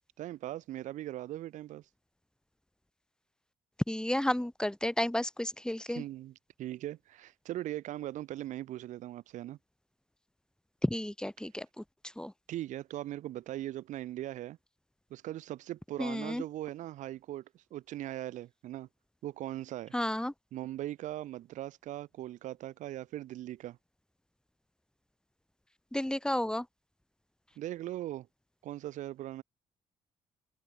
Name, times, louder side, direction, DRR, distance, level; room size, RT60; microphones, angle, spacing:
voice 1, 0.2-1.8 5.9-6.3 6.6-9.6 12.5-14.6 15.1-18.9 19.2-19.9 20.5-23.8 27.6-28.3 28.6-29.4, right 14 dB, 75° right, 5.5 m, -40 dB
voice 2, 3.9-6.0 10.8-12.3 16.0-16.4 19.9-20.3 25.9-26.7, left 1 dB, 5° left, 4.6 m, -32 dB
open air
supercardioid pair, 60°, 13 cm